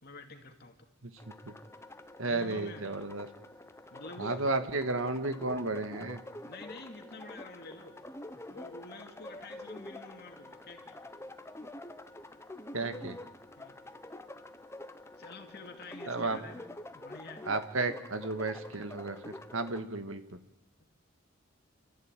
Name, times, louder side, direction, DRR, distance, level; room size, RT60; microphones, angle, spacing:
voice 1, 0.0-0.9 2.2-2.8 3.9-4.5 6.4-8.1 8.5-11.0 13.6-13.7 15.2-17.5 19.8-19.9, left 3 dB, 50° left, 5 dB, 2.7 m, -48 dB
sound 1, 1.2-19.8, left 1 dB, 15° left, 1.1 m, -47 dB
voice 2, 2.2-3.3 4.2-6.2 12.7-13.2 16.1-16.4 17.5-20.2, right 3 dB, 75° right, 9 dB, 1.8 m, -33 dB
29.5 x 14.0 x 9.1 m, 0.89 s
head